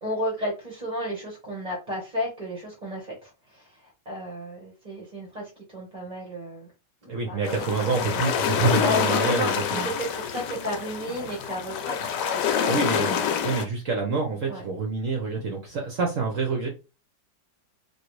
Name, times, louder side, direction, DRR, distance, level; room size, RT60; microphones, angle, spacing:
voice 1, 0.0-6.7 7.0-8.0 8.7-13.0 14.5-14.6, equal, 35° right, -3 dB, 0.7 m, -33 dB
voice 2, 7.1-9.9 12.7-16.7, right 4 dB, 65° right, 1 dB, 0.8 m, -27 dB
sound 1, 7.4-13.7, left 8 dB, 75° left, 1.1 m, -27 dB
3.1 x 2.6 x 3.0 m, 0.30 s
omnidirectional pair, 2.1 m